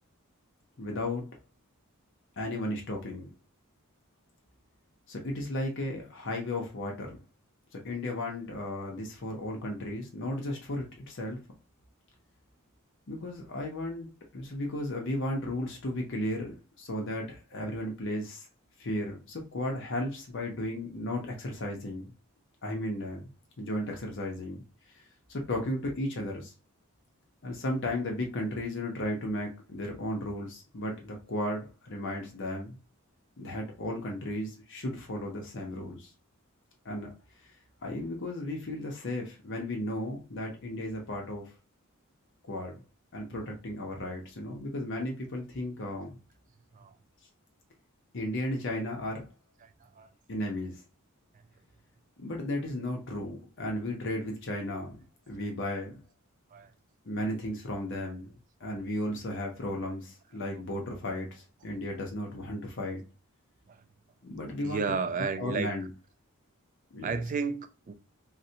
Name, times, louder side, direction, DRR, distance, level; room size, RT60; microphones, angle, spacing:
voice 1, 0.8-1.3 2.4-3.3 5.1-7.2 7.7-11.4 13.1-14.1 14.3-18.5 18.8-22.1 22.6-23.2 23.6-24.6 24.9-25.0 25.3-26.5 27.4-32.8 33.4-36.1 36.8-37.1 37.8-41.5 42.4-42.8 43.1-46.2 48.1-49.3 50.3-50.8 52.2-55.0 55.3-56.0 57.1-63.0 64.2-64.9 65.4-65.9 66.9-67.2, left 1 dB, 55° left, 0.7 m, -34 dB
voice 2, 64.6-65.9 67.0-68.0, right 5 dB, 35° right, 0.3 m, -33 dB
3.9 x 2.1 x 2.7 m
head